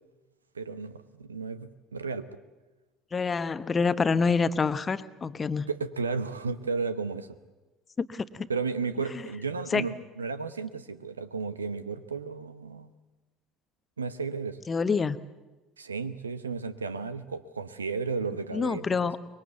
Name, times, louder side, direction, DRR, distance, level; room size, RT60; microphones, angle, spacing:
voice 1, 0.5-2.4 5.7-7.4 8.5-12.9 14.0-14.6 15.8-19.2, right 4 dB, 80° right, 13 dB, 0.9 m, -33 dB
voice 2, 3.1-5.7 8.0-8.5 9.1-9.2 9.7-9.9 14.7-15.2 18.5-19.2, left 5 dB, 25° left, 13 dB, 1.0 m, -27 dB
24.5 x 22.0 x 8.2 m, 1.1 s
figure-of-eight pair, 60°, 0 cm